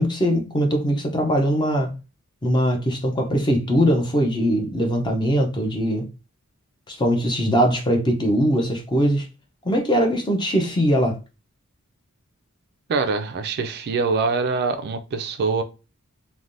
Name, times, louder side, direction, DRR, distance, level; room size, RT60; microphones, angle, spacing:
voice 1, 0.0-1.9 2.4-6.1 6.9-9.3 9.6-11.2, equal, 20° left, 0.6 m, -21 dB
voice 2, 12.9-15.6, right 4 dB, 45° right, 0.3 m, -24 dB
3.2 x 2.2 x 2.5 m
head